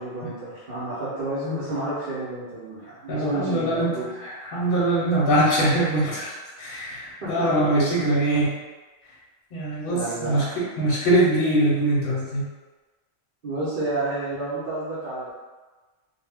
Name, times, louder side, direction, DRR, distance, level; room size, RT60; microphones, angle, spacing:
voice 1, 0.0-4.1 7.2-7.7 9.9-10.5 13.4-15.3, right 2 dB, 55° right, -11 dB, 0.8 m, -30 dB
voice 2, 3.1-6.3 6.6-8.5 9.5-12.5, right 1 dB, 55° left, -6 dB, 0.8 m, -23 dB
2.2 x 2.1 x 3.3 m, 1.3 s
omnidirectional pair, 1.1 m